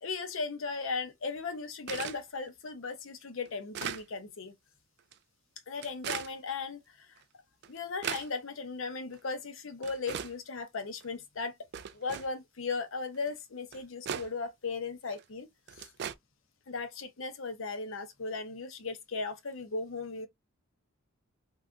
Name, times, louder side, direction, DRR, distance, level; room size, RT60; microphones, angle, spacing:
voice 1, 0.0-4.5 5.7-7.2 7.7-11.5 11.9-15.9 16.7-20.3, left 4 dB, 70° left, 0.7 m, -37 dB
sound 1, 1.9-2.2 2.8-2.9 3.4-4.0 5.0-5.1 5.8-6.3 7.2-7.3 7.6-8.3 9.1-9.2 9.8-10.3 11.0-11.1 11.7-12.3 13.3-13.4 13.7-14.3 15.1-15.2 15.7-16.1, right 8 dB, 55° right, 0.3 m, -38 dB
2.7 x 2.3 x 3.5 m
head